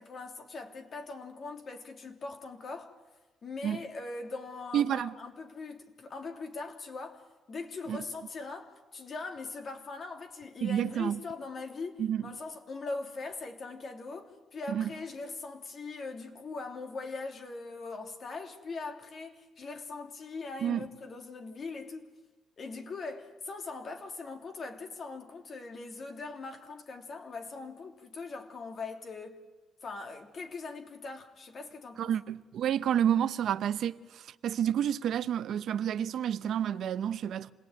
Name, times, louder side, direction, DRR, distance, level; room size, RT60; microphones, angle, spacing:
voice 1, 0.0-2.9 3.4-22.1 22.6-29.4 29.8-32.1, left 3 dB, 50° left, 3.1 m, -41 dB
voice 2, 4.7-5.1 7.9-8.0 10.6-11.2 12.0-12.2 14.7-14.9 20.6-20.9 32.0-34.0 34.4-37.5, right 9 dB, 70° right, 0.7 m, -29 dB
27.5 x 18.5 x 9.4 m
cardioid pair, 90°, 0 cm